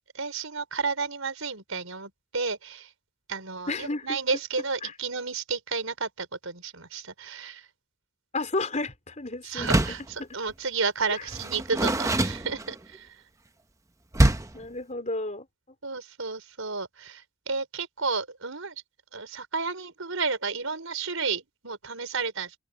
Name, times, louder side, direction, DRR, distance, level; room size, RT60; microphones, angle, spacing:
voice 1, 0.1-2.9 3.3-7.6 9.4-13.1 15.8-18.8 19.1-22.5, right 4 dB, 85° right, 5.0 m, -32 dB
voice 2, 3.7-4.2 4.8-4.9 8.3-9.7 10.2-10.3 11.1-11.2 14.5-15.5, left 2 dB, 35° left, 4.4 m, -32 dB
Door, 9.6-10.1 11.3-13.0 14.1-14.6, right 1 dB, 15° right, 0.8 m, -24 dB
open air
head